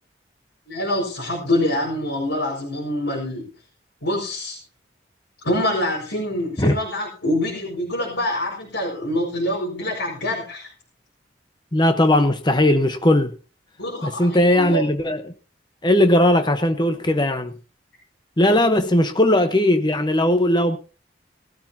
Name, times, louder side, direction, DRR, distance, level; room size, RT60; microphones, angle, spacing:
voice 1, 0.7-3.5 4.0-4.6 5.4-10.7 13.8-14.8, left 1 dB, 85° left, 5.0 m, -25 dB
voice 2, 11.7-13.3 14.0-15.3 15.8-17.6 18.4-20.8, left 1 dB, 25° left, 1.1 m, -18 dB
20.0 x 13.0 x 2.9 m
head